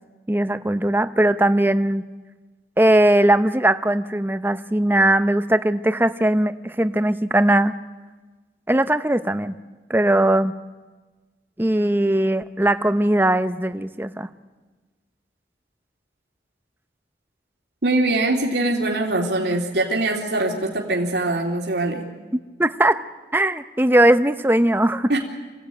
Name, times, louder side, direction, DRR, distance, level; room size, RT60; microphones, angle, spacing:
voice 1, 0.3-2.0 2.8-7.7 8.7-9.5 9.9-10.5 11.6-14.3 22.6-23.0 23.3-25.1, right 1 dB, 10° right, 11 dB, 0.7 m, -19 dB
voice 2, 17.8-22.0 25.1-25.2, right 2 dB, 75° right, -1 dB, 2.9 m, -22 dB
27.0 x 16.0 x 9.2 m, 1.3 s
head